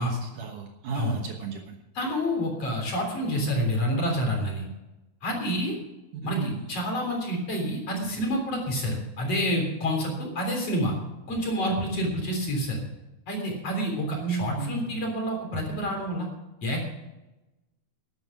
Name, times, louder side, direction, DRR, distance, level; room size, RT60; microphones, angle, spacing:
voice 1, 0.0-1.8 6.1-6.7 14.1-15.1, right 5 dB, 65° right, 3 dB, 2.4 m, -33 dB
voice 2, 1.9-4.7 5.2-5.7 6.2-11.0 11.3-12.8 13.3-16.3 16.6-16.9, equal, 40° left, 1 dB, 4.3 m, -28 dB
13.0 x 11.5 x 6.0 m, 1.0 s
omnidirectional pair, 4.5 m